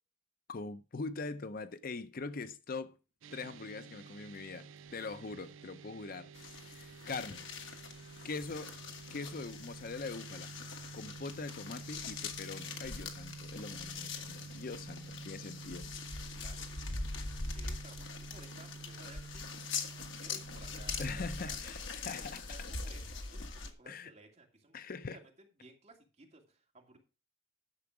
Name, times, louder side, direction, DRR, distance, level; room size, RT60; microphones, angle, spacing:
voice 1, 0.5-3.0 3.3-6.3 6.7-7.5 8.2-8.7 9.1-10.5 10.9-15.9 21.0-22.4 23.9-24.1 24.7-25.2, left 3 dB, 45° left, 0.6 m, -42 dB
sound 1, 3.2-21.5, right 4 dB, 75° right, 0.4 m, -50 dB
Zipper (clothing), 3.8-3.9 4.3-4.4 4.7-5.3 6.1-6.2 7.2-7.3 8.3-8.8 9.2-9.5, right 1 dB, 5° right, 3.1 m, -64 dB
sound 2, 6.3-23.7, left 4 dB, 65° left, 1.6 m, -43 dB
voice 2, 15.9-16.6 16.8-17.1 17.5-21.7 22.1-23.5 23.8-24.8 25.1-27.0, right 2 dB, 35° right, 2.5 m, -58 dB
10.5 x 7.0 x 4.8 m
head